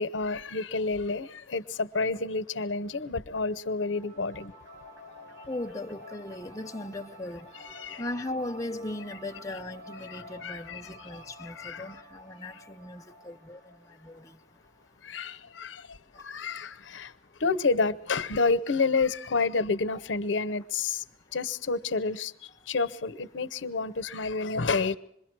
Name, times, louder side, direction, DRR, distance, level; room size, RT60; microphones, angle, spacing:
voice 1, 0.0-4.5 7.7-8.0 10.0-11.1 11.4-12.0 15.0-17.1 17.4-21.0 21.3-25.0, left 4 dB, 85° left, 0.8 m, -29 dB
sound 1, 3.8-14.9, equal, 65° right, 3.9 m, -50 dB
sound 2, 3.9-9.1, equal, 80° right, 7.6 m, -57 dB
voice 2, 5.5-7.5 8.0-14.4 19.9-20.0, left 1 dB, 20° left, 0.7 m, -38 dB
26.5 x 22.0 x 4.7 m
head